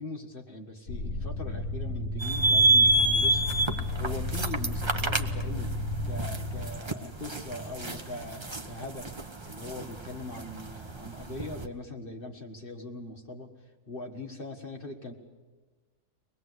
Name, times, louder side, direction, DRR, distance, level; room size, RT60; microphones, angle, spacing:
voice 1, 0.0-13.5 13.9-15.1, left 2 dB, 35° left, 2 dB, 1.9 m, -41 dB
sound 1, 0.9-6.7, left 1 dB, 55° left, 3.3 m, -33 dB
sound 2, 2.2-11.7, right 2 dB, 20° right, 0.8 m, -28 dB
24.5 x 20.0 x 8.1 m, 1.3 s
omnidirectional pair, 1.7 m